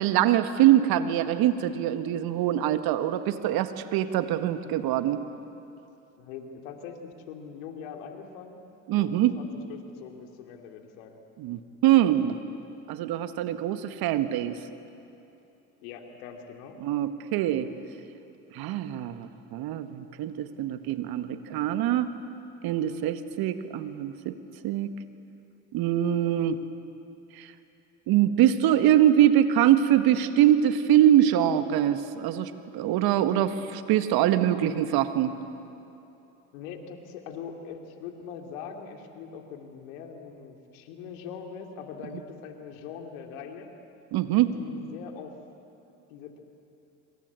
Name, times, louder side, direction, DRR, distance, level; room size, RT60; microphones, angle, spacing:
voice 1, 0.0-5.2 8.9-9.3 11.4-12.4 12.9-14.6 16.8-17.7 18.5-22.1 22.6-24.3 24.6-24.9 25.7-26.6 27.4-27.5 28.1-35.3 44.1-44.5, right 11 dB, 65° right, 10 dB, 1.7 m, -23 dB
voice 2, 6.2-8.6 9.0-11.2 15.8-16.8 36.5-43.7 44.5-45.3 46.1-46.4, left 7 dB, 80° left, 4 dB, 2.9 m, -42 dB
26.5 x 25.5 x 8.3 m, 2.9 s
hypercardioid pair, 65°, 40 cm